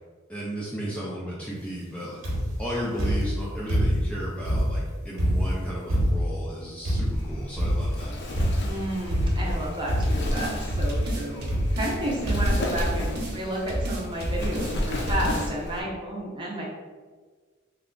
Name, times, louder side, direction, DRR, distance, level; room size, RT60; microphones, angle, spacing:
voice 1, 0.3-8.2, equal, 5° left, -6 dB, 0.4 m, -34 dB
sound 1, 2.2-2.6 3.0-4.1 4.4-6.4 6.8-7.3 7.6-8.0 8.4-8.8 9.1-9.6 9.9-10.3 10.7-11.0 11.5-12.0 12.3-12.6 13.3-13.4 13.6-13.7, equal, 80° right, 0.9 m, -25 dB
Wind, 7.1-15.8, left 1 dB, 60° left, 0.6 m, -33 dB
voice 2, 8.6-11.5 11.7-16.6, equal, 25° right, -4 dB, 0.7 m, -31 dB
sound 2, 10.0-10.6 10.9-12.0 12.3-13.4 13.7-14.7 15.1-15.5, right 1 dB, 55° right, 0.7 m, -30 dB
3.3 x 2.3 x 3.7 m, 1.5 s
head